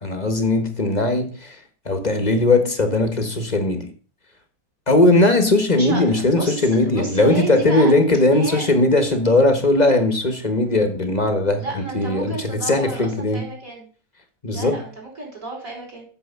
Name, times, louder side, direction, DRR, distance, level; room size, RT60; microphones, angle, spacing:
voice 1, 0.0-1.6 1.8-3.9 4.9-13.5 14.4-14.8, left 2 dB, 25° left, 1.4 m, -19 dB
voice 2, 5.7-7.9 8.3-8.6 11.6-13.9 14.5-16.0, right 2 dB, 50° right, 5.1 m, -32 dB
8.6 x 7.1 x 6.9 m
omnidirectional pair, 1.8 m